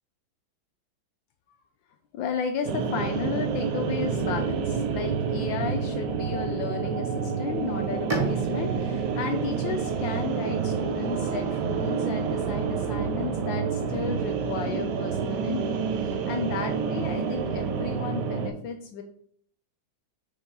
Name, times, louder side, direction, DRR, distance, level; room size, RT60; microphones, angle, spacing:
voice 1, 2.1-19.0, left 7 dB, 75° left, 5 dB, 1.3 m, -34 dB
sound 1, 2.6-18.5, right 6 dB, 70° right, 1.1 m, -28 dB
Bowed string instrument, 8.1-11.7, right 4 dB, 40° right, 0.5 m, -34 dB
7.0 x 3.7 x 4.0 m, 0.63 s
omnidirectional pair, 2.2 m